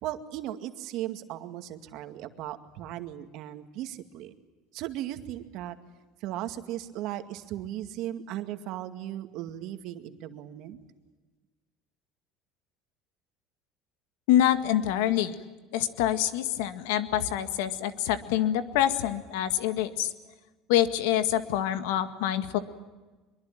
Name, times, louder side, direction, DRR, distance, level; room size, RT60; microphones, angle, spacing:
voice 1, 0.0-4.3 4.7-5.8 6.2-10.8, right 13 dB, 65° right, 8 dB, 2.1 m, -37 dB
voice 2, 14.3-15.3 15.7-20.1 20.7-22.6, left 11 dB, 85° left, 10 dB, 1.9 m, -26 dB
24.0 x 23.0 x 9.0 m, 1.3 s
supercardioid pair, 110°, 0 cm